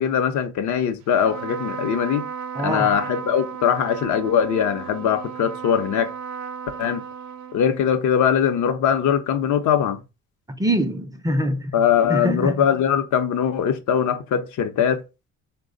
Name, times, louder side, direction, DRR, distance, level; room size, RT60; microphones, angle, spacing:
voice 1, 0.0-2.2 2.6-6.1 6.8-7.0 7.5-10.0 11.7-15.0, left 8 dB, 75° left, 0.6 m, -21 dB
Trumpet, 1.1-8.0, right 7 dB, 65° right, 0.5 m, -34 dB
voice 2, 2.5-3.0 10.5-11.7 12.1-12.6, equal, 10° right, 0.4 m, -24 dB
3.3 x 2.1 x 3.7 m
cardioid pair, 90°, 30 cm